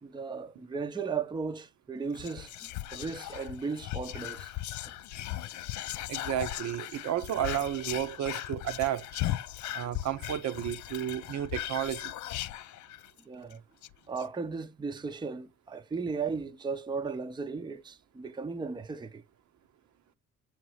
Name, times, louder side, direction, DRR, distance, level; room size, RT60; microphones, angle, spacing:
voice 1, 0.0-4.5 13.2-13.6 14.1-19.2, right 5 dB, 15° right, 0.6 m, -36 dB
Whispering, 2.1-13.2 13.5-13.6 13.8-14.2, left 14 dB, 70° left, 0.5 m, -38 dB
voice 2, 6.1-9.1 9.7-12.1, right 11 dB, 65° right, 0.7 m, -32 dB
7.2 x 2.9 x 4.7 m
cardioid pair, 90°, 30 cm